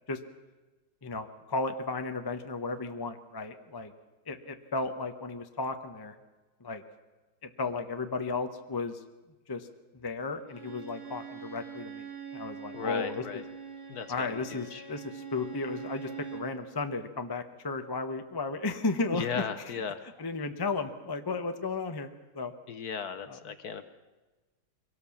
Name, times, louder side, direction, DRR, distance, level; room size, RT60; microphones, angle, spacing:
voice 1, 1.0-3.9 4.3-6.2 6.6-6.8 7.4-9.0 9.5-9.7 9.9-12.1 12.3-13.4 14.1-19.8 20.2-22.5 23.3-23.4, left 3 dB, 25° left, 7 dB, 0.5 m, -34 dB
Bowed string instrument, 10.5-16.6, right 7 dB, 45° right, 3.7 m, -43 dB
voice 2, 12.7-13.4 13.9-14.8 19.1-20.0 22.7-23.8, left 6 dB, 55° left, 10 dB, 1.3 m, -36 dB
23.0 x 17.5 x 7.2 m, 1.2 s
omnidirectional pair, 2.3 m